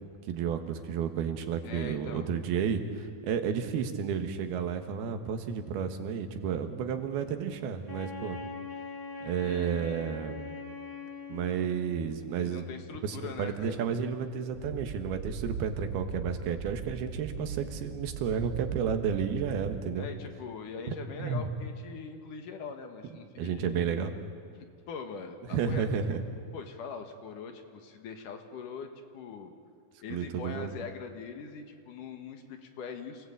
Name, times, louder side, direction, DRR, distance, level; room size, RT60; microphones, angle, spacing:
voice 1, 0.3-8.4 9.2-10.4 11.3-12.6 13.0-20.1 21.2-21.5 23.4-24.1 25.5-26.2 30.1-30.7, right 7 dB, 90° right, 7 dB, 3.4 m, -32 dB
voice 2, 1.6-2.3 9.4-10.0 12.4-13.9 20.0-24.1 24.9-25.9 26.5-29.5 30.0-33.3, left 5 dB, 65° left, 6 dB, 2.9 m, -42 dB
Wind instrument woodwind instrument, 7.9-12.2, left 2 dB, 5° left, 2.2 m, -42 dB
sound 1, 14.5-19.8, right 5 dB, 65° right, 5.2 m, -39 dB
27.5 x 18.5 x 8.7 m, 2.5 s
omnidirectional pair, 4.3 m